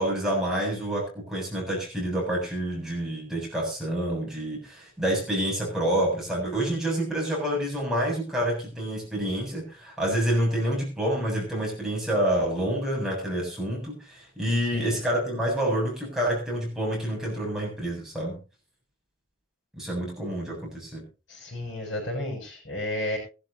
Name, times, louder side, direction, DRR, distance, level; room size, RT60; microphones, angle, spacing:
voice 1, 0.0-18.4 19.8-21.0, right 1 dB, 5° right, -3 dB, 7.5 m, -28 dB
voice 2, 21.3-23.2, left 1 dB, 65° left, 1 dB, 7.3 m, -32 dB
22.0 x 12.5 x 2.8 m, 0.33 s
head